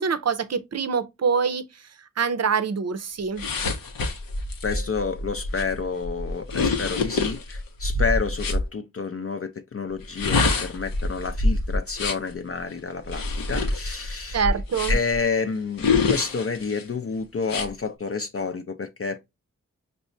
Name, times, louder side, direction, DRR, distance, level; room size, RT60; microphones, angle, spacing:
voice 1, 0.0-1.9 2.2-3.5 14.3-15.0, right 6 dB, 50° right, 0.6 m, -25 dB
sound 1, 3.4-8.6 10.0-12.3 13.1-15.2 15.8-16.8 17.4-17.7, left 3 dB, 85° left, 0.6 m, -26 dB
voice 2, 4.6-14.4 14.9-19.2, left 4 dB, 45° left, 0.5 m, -29 dB
5.2 x 2.1 x 2.5 m
cardioid pair, 45°, 33 cm